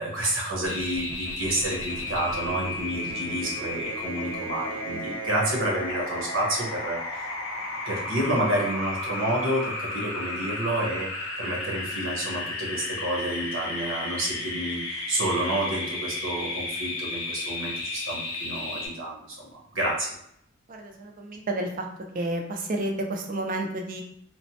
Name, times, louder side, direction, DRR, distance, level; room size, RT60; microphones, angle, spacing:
voice 1, 0.0-7.3 7.9-20.1, right 1 dB, 80° right, -3 dB, 0.9 m, -29 dB
sound 1, 0.7-18.9, left 2 dB, 75° left, 0.7 m, -33 dB
voice 2, 20.7-21.8 22.1-24.0, right 1 dB, 40° right, 3 dB, 0.4 m, -30 dB
3.0 x 2.1 x 2.7 m, 0.71 s
head